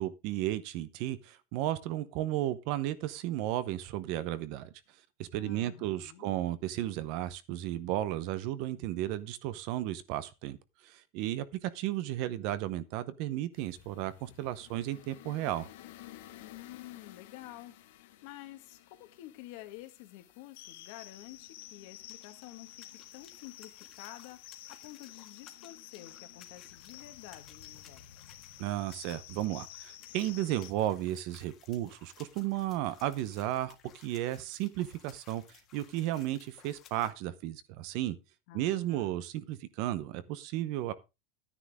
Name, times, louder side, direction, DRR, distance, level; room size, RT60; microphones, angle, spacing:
voice 1, 0.0-4.7 5.2-10.6 10.8-15.7 28.6-38.2 38.5-40.9, right 14 dB, 45° right, 0.7 m, -34 dB
voice 2, 5.4-6.3 16.4-28.0 38.5-39.1, left 15 dB, 50° left, 1.6 m, -50 dB
sound 1, 13.5-30.7, left 13 dB, 70° left, 1.4 m, -52 dB
sound 2, 20.9-37.1, left 9 dB, 25° left, 1.6 m, -59 dB
12.0 x 9.9 x 3.5 m
supercardioid pair, 175°, 0 cm